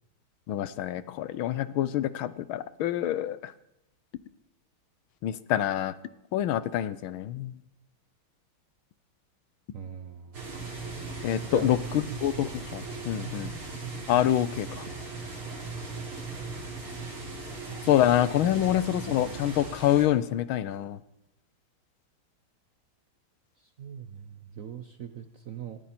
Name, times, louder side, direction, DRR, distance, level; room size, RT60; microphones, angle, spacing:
voice 1, 0.5-3.5 5.2-5.9 6.3-7.5 11.2-13.5 14.1-14.8 17.9-21.0, left 12 dB, 75° left, 16 dB, 1.5 m, -26 dB
voice 2, 9.7-10.3 11.5-12.1 23.8-24.1 24.6-25.8, right 8 dB, 60° right, 9 dB, 0.9 m, -40 dB
sound 1, 10.3-20.1, right 3 dB, 85° right, 4.9 m, -38 dB
19.5 x 14.5 x 4.4 m, 0.89 s
omnidirectional pair, 2.3 m